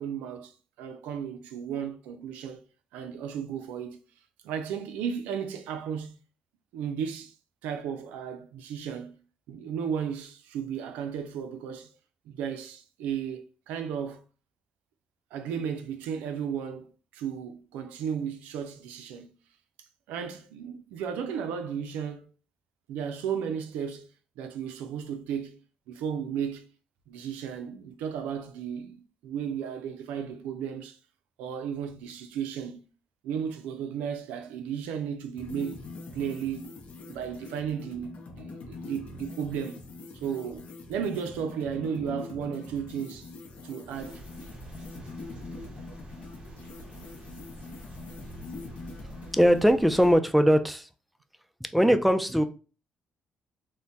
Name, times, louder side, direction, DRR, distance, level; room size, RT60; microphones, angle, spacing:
voice 1, 0.0-2.6 2.9-4.0 4.4-6.2 6.7-7.3 7.6-9.2 9.5-11.9 12.3-14.2 15.3-19.3 20.1-22.3 22.9-24.1 24.4-25.6 25.9-26.7 27.1-31.0 31.4-32.8 33.2-35.8 36.1-36.6 37.1-39.8 40.1-43.3 43.6-44.2, right 7 dB, 85° right, 0.3 m, -34 dB
sound 1, 35.4-50.2, left 3 dB, 60° left, 0.5 m, -43 dB
sound 2, 43.9-50.2, right 2 dB, 50° right, 1.1 m, -47 dB
voice 2, 49.3-50.9 51.7-52.4, equal, ahead, 0.4 m, -21 dB
2.2 x 2.1 x 3.8 m
supercardioid pair, 65°, 3 cm